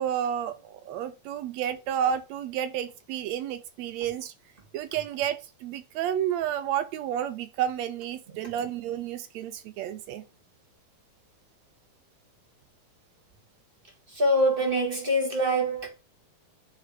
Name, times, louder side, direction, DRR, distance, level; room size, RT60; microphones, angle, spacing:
voice 1, 0.0-4.3 4.7-10.2, right 10 dB, 80° right, 1.6 m, -31 dB
voice 2, 14.1-15.9, equal, 25° right, 1.4 m, -24 dB
9.2 x 3.3 x 4.9 m
omnidirectional pair, 3.6 m